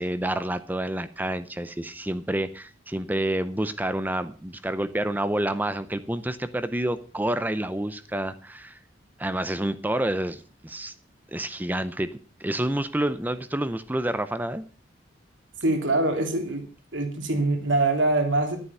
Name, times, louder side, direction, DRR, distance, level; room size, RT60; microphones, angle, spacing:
voice 1, 0.0-8.8 9.2-10.9 11.3-12.1 12.4-14.7, right 1 dB, 10° right, 12 dB, 0.6 m, -28 dB
voice 2, 15.6-16.6 16.9-18.6, right 2 dB, 75° right, 3 dB, 3.0 m, -24 dB
11.5 x 9.9 x 5.5 m, 0.38 s
head